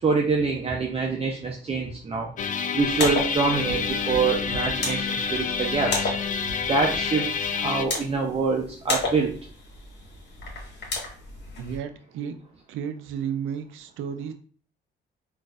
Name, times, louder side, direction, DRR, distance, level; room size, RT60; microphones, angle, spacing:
voice 1, 0.0-2.3 2.7-6.1 6.7-9.4, right 4 dB, 30° right, 0 dB, 0.6 m, -25 dB
sound 1, 2.4-7.8, left 6 dB, 40° left, 0.4 m, -28 dB
sound 2, 2.8-11.8, left 2 dB, 55° left, 1.3 m, -33 dB
voice 2, 11.5-12.4 12.7-14.3, right 8 dB, 85° right, 8 dB, 0.4 m, -33 dB
3.9 x 2.5 x 2.4 m, 0.43 s
cardioid pair, 90°, 20 cm